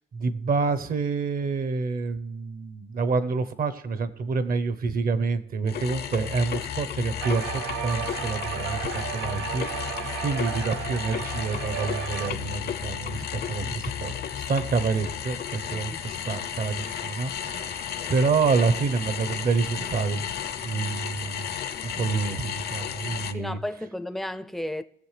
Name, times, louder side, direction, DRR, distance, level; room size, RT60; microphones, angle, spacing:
voice 1, 0.1-9.6 9.9-14.1 14.5-17.8 18.1-20.2 20.6-21.5 21.8-23.6, right 4 dB, 45° right, 0.8 m, -28 dB
sound 1, 5.7-23.3, left 9 dB, 55° left, 0.6 m, -33 dB
sound 2, 7.2-12.3, right 11 dB, 90° right, 0.5 m, -34 dB
voice 2, 15.7-16.0 23.3-24.8, left 1 dB, ahead, 0.5 m, -33 dB
19.5 x 7.2 x 3.3 m
cardioid pair, 90°, 20 cm